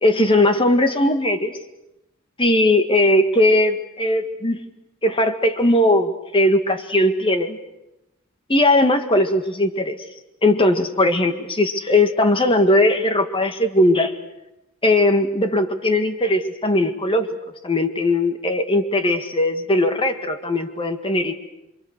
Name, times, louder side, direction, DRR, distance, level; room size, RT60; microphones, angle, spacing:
voice 1, 0.0-1.5 2.4-4.6 5.0-7.6 8.5-10.0 10.4-14.1 14.8-17.3 17.6-21.3, left 1 dB, 25° left, 7 dB, 1.8 m, -19 dB
28.0 x 25.0 x 6.6 m, 0.91 s
head